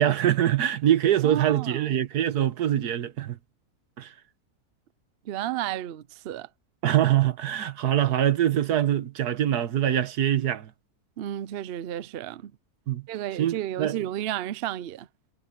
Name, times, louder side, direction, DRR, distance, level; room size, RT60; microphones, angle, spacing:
voice 1, 0.0-3.4 4.0-4.1 6.8-10.7 12.9-13.0 13.4-14.0, right 11 dB, 90° right, 1.6 m, -24 dB
voice 2, 1.2-1.9 5.3-6.5 11.2-12.5 13.1-15.1, right 12 dB, 60° right, 0.6 m, -32 dB
omnidirectional pair, 1.6 m